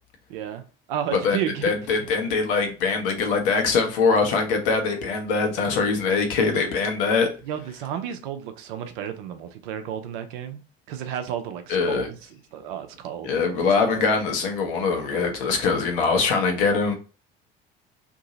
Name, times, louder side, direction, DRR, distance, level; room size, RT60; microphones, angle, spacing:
voice 1, 0.3-0.6 0.9-1.7 2.0-2.1 7.4-10.6 10.9-14.1, right 9 dB, 60° right, 0.6 m, -32 dB
voice 2, 1.2-7.3 11.7-12.1 13.2-16.9, left 4 dB, 65° left, 0.9 m, -23 dB
2.7 x 2.6 x 3.9 m
figure-of-eight pair, 60°, 29 cm